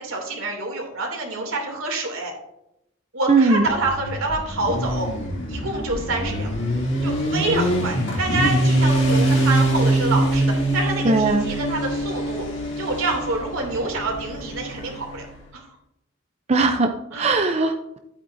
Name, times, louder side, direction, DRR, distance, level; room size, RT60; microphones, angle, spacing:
voice 1, 0.0-2.3 3.1-5.1 5.5-6.5 7.0-12.4 12.8-15.3 15.5-15.7 17.1-17.4, right 2 dB, 85° right, 1 dB, 2.6 m, -27 dB
voice 2, 3.3-3.7 11.0-11.5 16.5-18.0, right 3 dB, 30° right, 5 dB, 0.5 m, -19 dB
Motorcycle, 3.6-15.3, right 1 dB, 60° left, 2.4 m, -23 dB
11.5 x 8.8 x 2.6 m, 0.82 s
head